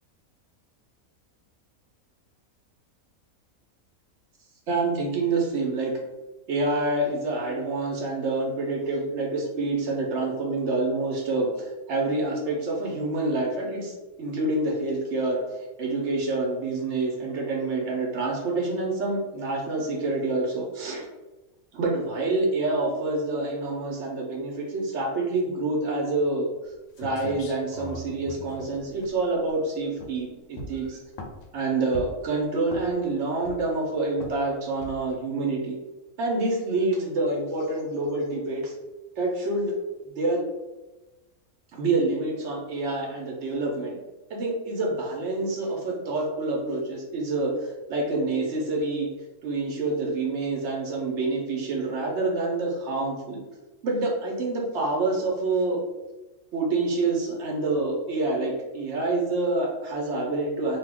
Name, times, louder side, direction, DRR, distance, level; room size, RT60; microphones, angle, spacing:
voice 1, 4.7-6.0 6.5-15.4 15.8-21.0 21.7-26.5 27.0-31.0 31.5-35.8 36.2-38.7 39.2-39.8 40.2-40.4 41.7-44.0 44.3-49.1 49.4-53.4 53.8-55.8 56.5-60.8, right 2 dB, 60° right, 0 dB, 0.9 m, -27 dB
sound 1, 26.7-26.8 27.0-29.6 30.0-30.2 30.6-31.5 31.9-32.3 32.7-33.1 33.4-33.8 34.2-34.4 34.8-35.1, left 2 dB, 70° left, 0.8 m, -39 dB
2.8 x 2.3 x 3.4 m, 1.1 s
omnidirectional pair, 1.5 m